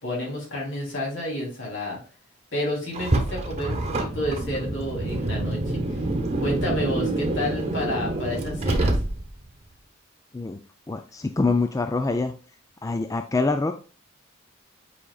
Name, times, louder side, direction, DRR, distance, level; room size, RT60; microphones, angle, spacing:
voice 1, 0.0-2.0 2.5-6.0 6.4-9.0, left 1 dB, 60° left, -2 dB, 3.2 m, -30 dB
Car, 2.9-9.5, right 2 dB, 30° right, 1.0 m, -26 dB
voice 2, 10.9-12.3 12.8-13.7, left 3 dB, 15° left, 7 dB, 0.3 m, -25 dB
8.4 x 5.0 x 2.3 m, 0.36 s
head